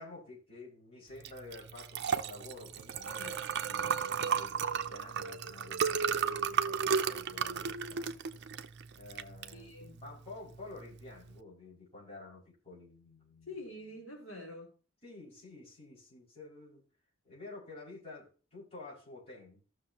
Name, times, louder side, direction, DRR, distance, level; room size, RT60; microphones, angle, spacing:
voice 1, 0.0-8.2 8.9-13.6 15.0-16.8 17.2-19.6, left 2 dB, 30° left, 5.3 m, -50 dB
Liquid, 1.2-11.4, right 6 dB, 55° right, 0.6 m, -34 dB
voice 2, 3.2-4.0 4.3-4.8 9.5-10.0 13.5-14.7, left 1 dB, 80° left, 3.1 m, -48 dB
15.5 x 6.4 x 2.8 m
head